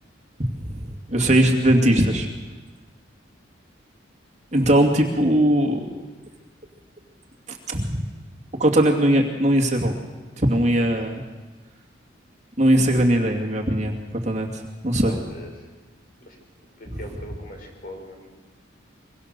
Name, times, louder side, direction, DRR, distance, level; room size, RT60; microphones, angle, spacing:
voice 1, 1.1-2.3 4.5-5.8 7.5-8.0 8.6-9.9 10.4-11.2 12.6-13.9 14.2-15.1, right 1 dB, 35° right, 1 dB, 2.4 m, -19 dB
voice 2, 15.0-15.7 16.2-16.4 16.8-18.3, left 1 dB, 45° left, 2 dB, 5.5 m, -40 dB
24.0 x 24.0 x 6.9 m, 1.3 s
head